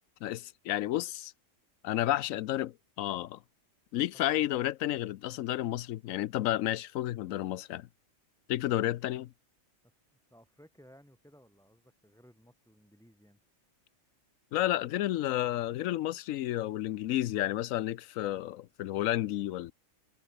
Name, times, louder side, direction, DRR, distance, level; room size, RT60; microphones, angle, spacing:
voice 1, 0.2-1.3 1.8-3.4 3.9-7.9 8.5-9.3 14.5-19.7, left 14 dB, 80° left, 1.0 m, -31 dB
voice 2, 10.1-13.4, equal, ahead, 6.5 m, -59 dB
omnidirectional pair, 1.4 m